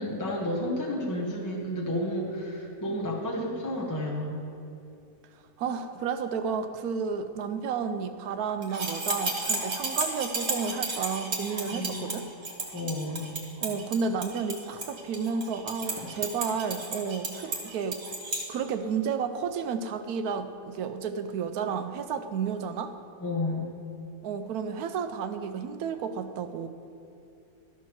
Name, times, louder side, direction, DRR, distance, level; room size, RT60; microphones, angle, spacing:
voice 1, 0.0-4.4 11.7-12.1 12.7-13.3 16.0-16.1 23.2-23.7, left 1 dB, 15° left, -4 dB, 0.9 m, -31 dB
voice 2, 5.6-12.3 13.6-18.0 18.5-22.9 24.2-26.7, right 6 dB, 75° right, 9 dB, 1.0 m, -32 dB
sound 1, 8.6-18.4, right 3 dB, 45° right, 1.5 m, -33 dB
12.5 x 4.6 x 6.0 m, 2.7 s
omnidirectional pair, 1.7 m